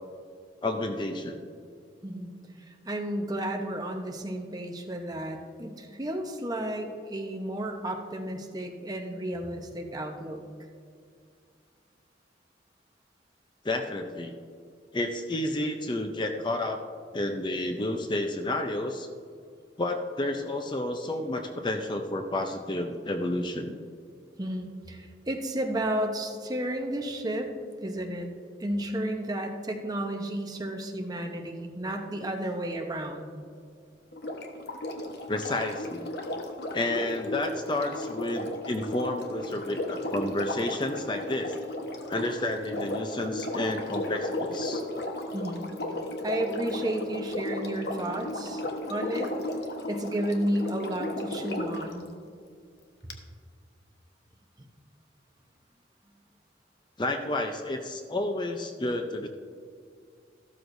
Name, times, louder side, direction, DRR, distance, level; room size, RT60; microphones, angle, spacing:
voice 1, 0.6-1.4 13.6-14.3 14.9-16.8 17.1-19.1 19.8-23.8 35.3-36.1 36.7-41.5 42.1-44.8 57.0-59.3, left 1 dB, 25° left, 5 dB, 0.6 m, -30 dB
voice 2, 2.7-10.4 24.4-27.5 27.8-28.3 28.6-33.3 45.3-45.7 46.2-49.3 49.9-52.1, right 1 dB, 20° right, 2 dB, 0.9 m, -32 dB
Sink (filling or washing), 34.1-51.9 53.1-53.2, left 1 dB, 65° left, 1.1 m, -35 dB
13.5 x 12.5 x 2.6 m, 2.2 s
head